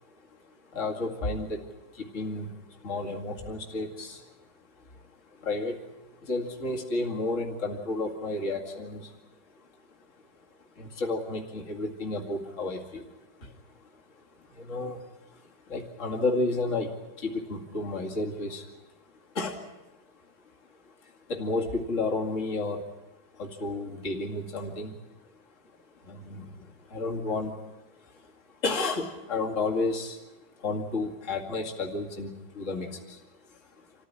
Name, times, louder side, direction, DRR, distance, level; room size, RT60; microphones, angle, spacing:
voice 1, 0.5-4.5 4.9-5.0 5.3-9.2 9.6-9.7 10.8-13.5 13.9-14.0 14.4-18.7 19.3-19.6 20.8-22.9 23.3-25.0 26.0-27.7 28.0-28.3 28.6-30.2 30.6-33.9, left 2 dB, 50° left, 0 dB, 2.7 m, -32 dB
27.0 x 15.0 x 9.8 m, 1.0 s
omnidirectional pair, 1.8 m